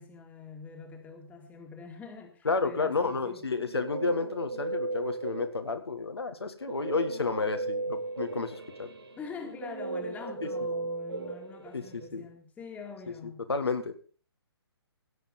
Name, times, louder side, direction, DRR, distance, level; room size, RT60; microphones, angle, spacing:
voice 1, 0.0-3.4 9.2-13.5, left 5 dB, 10° left, 4 dB, 2.1 m, -45 dB
voice 2, 2.4-8.9 10.4-10.5 11.7-12.2 13.5-13.9, left 4 dB, 70° left, 6 dB, 1.8 m, -31 dB
Guitar, 3.4-5.9 6.7-12.1, right 3 dB, 65° right, 2.6 m, -36 dB
16.5 x 7.4 x 5.4 m, 0.40 s
figure-of-eight pair, 130°, 14 cm